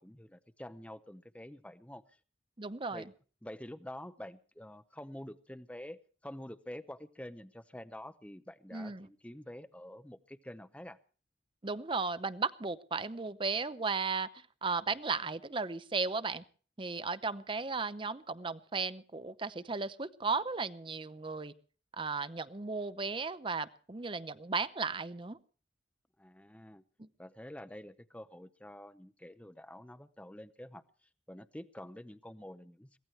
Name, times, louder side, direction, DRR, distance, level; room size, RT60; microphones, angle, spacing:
voice 1, 0.0-2.2 2.9-3.1 3.4-11.0 26.2-26.8 27.2-33.0, left 1 dB, 5° left, 13 dB, 0.7 m, -48 dB
voice 2, 2.6-3.0 8.7-9.1 11.6-16.4 16.8-21.5 22.0-25.4 27.0-27.1, right 4 dB, 30° right, 14 dB, 0.7 m, -35 dB
23.0 x 17.0 x 3.2 m, 0.39 s
head